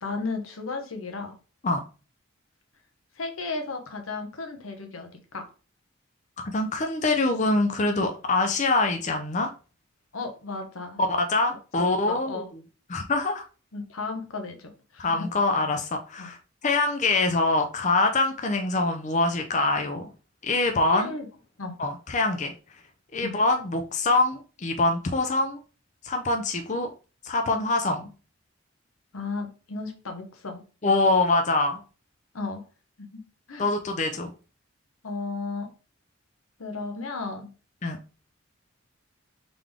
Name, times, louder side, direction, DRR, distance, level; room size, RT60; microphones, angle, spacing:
voice 1, 0.0-1.4 3.2-5.5 10.1-11.0 11.8-12.5 13.7-15.3 16.2-16.3 20.9-21.3 21.6-21.8 23.2-23.4 29.1-30.6 32.3-32.6 33.0-33.2 33.5-33.7 35.0-35.7 36.6-37.5, left 3 dB, 85° left, 4 dB, 1.0 m, -34 dB
voice 2, 6.4-9.5 11.0-12.4 12.9-13.4 15.0-16.4 16.6-20.1 20.4-21.1 21.8-22.5 23.1-25.6 26.0-26.9 27.2-28.1 30.8-31.8 33.6-34.3 37.8-38.0, left 2 dB, 35° left, 5 dB, 0.5 m, -24 dB
3.8 x 3.5 x 3.5 m, 0.35 s
head